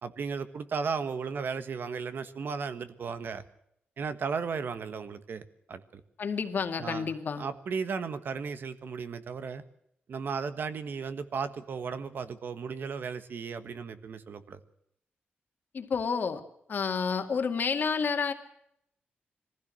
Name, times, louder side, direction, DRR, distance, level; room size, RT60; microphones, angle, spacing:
voice 1, 0.0-3.4 4.0-6.0 6.8-7.1 7.4-9.6 10.1-14.6, right 5 dB, 65° right, 11 dB, 1.4 m, -35 dB
voice 2, 6.2-7.4 15.7-16.4 16.7-18.3, left 5 dB, 55° left, 6 dB, 2.2 m, -30 dB
22.5 x 15.5 x 7.7 m, 0.75 s
wide cardioid pair, 140°, 4 cm